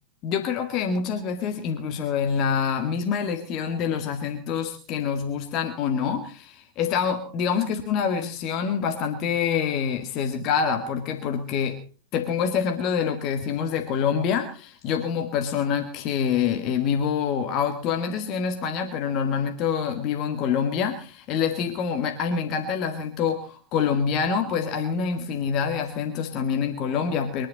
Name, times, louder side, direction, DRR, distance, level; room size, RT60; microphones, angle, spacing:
voice 1, 0.2-11.8 12.1-27.5, left 7 dB, 40° left, 6 dB, 1.9 m, -26 dB
23.0 x 11.0 x 5.2 m, 0.39 s
figure-of-eight pair, 90°, 0 cm